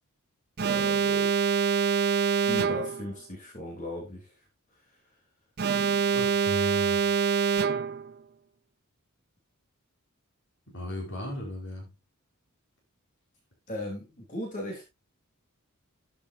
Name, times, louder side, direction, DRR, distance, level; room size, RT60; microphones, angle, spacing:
voice 1, 0.6-1.3 2.5-4.3 13.7-14.8, left 1 dB, 35° left, 3.5 m, -37 dB
Alarm, 0.6-3.1 5.6-8.1, right 6 dB, 45° right, 0.7 m, -25 dB
voice 2, 6.1-7.0 10.7-11.9, equal, 60° left, 5.2 m, -36 dB
12.5 x 8.6 x 2.8 m
head